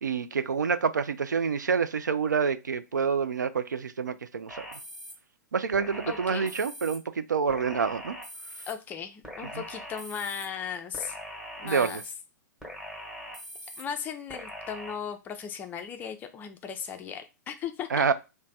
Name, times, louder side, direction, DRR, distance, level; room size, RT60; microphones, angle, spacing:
voice 1, 0.0-4.7 5.5-8.2 9.5-9.6 11.6-12.0 17.9-18.1, right 6 dB, 75° right, 0.4 m, -27 dB
sound 1, 4.5-5.1 5.7-7.0 7.5-8.7 9.2-10.5 10.9-12.1 12.6-13.8 14.3-14.9, equal, 5° right, 1.1 m, -42 dB
voice 2, 6.1-6.5 8.7-11.2 11.6-12.0 13.6-18.1, left 7 dB, 20° left, 0.4 m, -37 dB
3.1 x 2.1 x 4.0 m
figure-of-eight pair, 110°, 10 cm